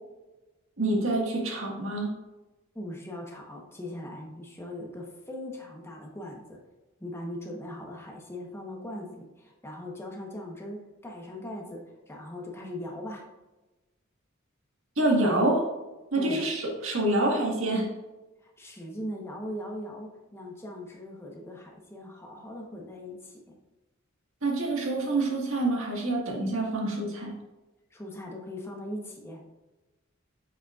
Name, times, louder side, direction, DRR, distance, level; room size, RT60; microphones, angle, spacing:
voice 1, 0.8-2.1 15.0-15.6 16.1-17.9 24.4-27.3, right 2 dB, 70° right, -1 dB, 1.7 m, -26 dB
voice 2, 2.7-6.6 7.0-13.3 16.1-16.5 18.4-23.6 27.9-29.6, left 1 dB, 10° left, 0 dB, 1.0 m, -40 dB
7.4 x 6.5 x 2.4 m, 1.1 s
head